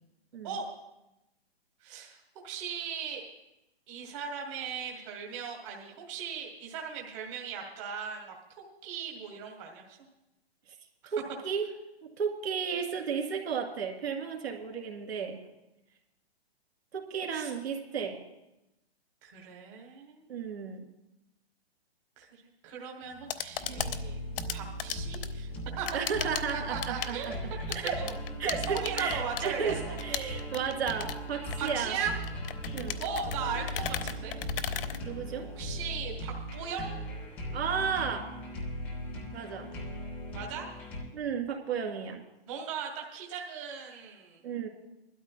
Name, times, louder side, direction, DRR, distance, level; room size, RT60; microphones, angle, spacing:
voice 1, 1.8-2.2 2.4-3.2 3.9-10.0 11.0-11.1 17.3-17.5 19.2-20.2 22.2-22.3 22.6-24.2 24.5-25.5 25.8-26.0 26.5-27.4 28.0-28.1 28.7-30.0 31.6-32.1 33.0-34.4 35.6-37.0 40.3-40.7 42.5-44.4, right 6 dB, 30° right, 0 dB, 1.3 m, -38 dB
voice 2, 11.1-11.7 12.0-15.4 16.9-18.2 20.3-20.9 25.9-28.0 28.4-32.0 32.7-33.0 35.0-35.5 37.5-38.3 39.3-39.7 41.1-42.3 44.4-44.7, right 6 dB, 75° right, 2 dB, 2.3 m, -33 dB
sound 1, 23.0-35.7, left 8 dB, 60° left, 0.7 m, -38 dB
sound 2, 23.6-41.0, equal, 5° left, 0.4 m, -38 dB
21.5 x 12.5 x 2.2 m, 0.92 s
hypercardioid pair, 155°, 32 cm